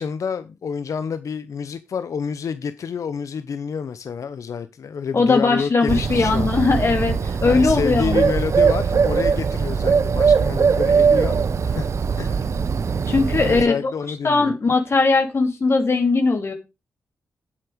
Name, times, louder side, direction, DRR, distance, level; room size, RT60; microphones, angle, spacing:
voice 1, 0.0-6.5 7.4-11.9 12.2-12.5 13.4-14.5, left 6 dB, 65° left, 0.7 m, -28 dB
voice 2, 5.1-8.3 13.1-13.9 14.2-16.5, left 3 dB, 45° left, 2.4 m, -19 dB
Bird, 5.9-13.6, right 5 dB, 55° right, 0.8 m, -20 dB
8.0 x 7.4 x 5.0 m
cardioid pair, 75°, 6 cm